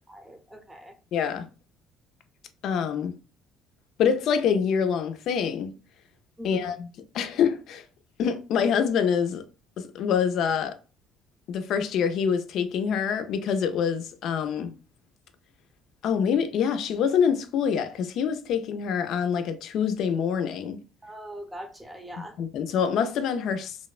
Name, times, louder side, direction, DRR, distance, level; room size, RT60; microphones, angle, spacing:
voice 1, 0.1-0.9 6.4-6.7 21.0-22.4, equal, 10° right, 0.6 m, -42 dB
voice 2, 1.1-1.5 2.6-3.1 4.0-5.7 6.4-7.8 8.2-9.4 9.8-10.8 11.5-14.7 16.0-20.8 22.2-23.8, left 7 dB, 65° left, 0.4 m, -26 dB
2.8 x 2.1 x 2.3 m
cardioid pair, 100°, 0 cm